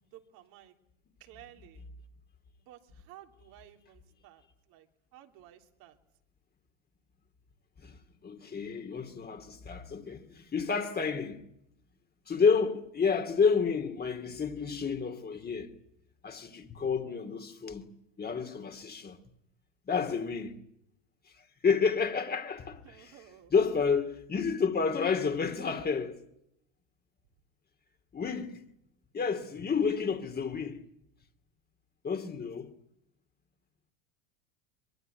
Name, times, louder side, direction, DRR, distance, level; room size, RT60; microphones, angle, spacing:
voice 1, 0.0-0.8 1.2-1.8 2.7-4.9 5.1-6.0 10.9-11.2 22.8-23.5, right 12 dB, 65° right, 3.5 m, -54 dB
voice 2, 8.2-11.4 12.3-15.7 16.2-17.9 18.2-19.2 19.9-20.6 21.4-23.1 23.5-26.2 28.1-28.6 29.1-30.9 32.0-32.7, left 5 dB, 25° left, 2.6 m, -30 dB
23.0 x 22.5 x 9.4 m
supercardioid pair, 105°, 39 cm